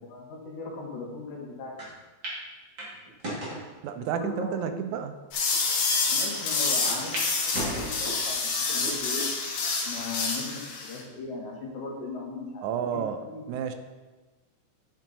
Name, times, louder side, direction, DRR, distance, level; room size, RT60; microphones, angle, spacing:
voice 1, 0.0-1.9 4.0-4.8 6.1-9.3 9.8-13.8, left 3 dB, 85° left, -1 dB, 3.0 m, -38 dB
sound 1, 1.8-1.9 2.2-2.4 2.8-3.6 4.3-4.4 5.1-5.2 5.5-5.6 6.9-7.3 7.5-8.3 8.8-9.3 9.8-9.9 11.1-11.5, right 1 dB, 35° right, 3.0 m, -35 dB
voice 2, 3.8-5.1 12.6-13.7, right 8 dB, 85° right, 9 dB, 2.1 m, -31 dB
sound 2, 5.3-11.0, left 4 dB, 65° left, 2.4 m, -28 dB
9.2 x 7.6 x 4.1 m, 1.2 s
omnidirectional pair, 3.4 m